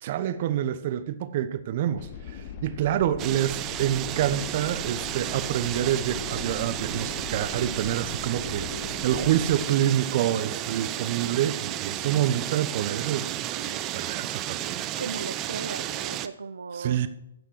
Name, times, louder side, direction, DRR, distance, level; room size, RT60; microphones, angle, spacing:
voice 1, 0.0-14.9 16.8-17.1, right 11 dB, 45° right, 0.9 m, -27 dB
sound 1, 2.0-9.6, left 7 dB, 40° left, 1.2 m, -40 dB
sound 2, 3.2-16.3, right 13 dB, 25° right, 0.6 m, -33 dB
sound 3, 5.4-12.1, left 1 dB, 75° left, 4.1 m, -48 dB
voice 2, 15.0-17.1, right 4 dB, 80° right, 0.5 m, -36 dB
15.5 x 5.8 x 4.7 m
figure-of-eight pair, 125°, 0 cm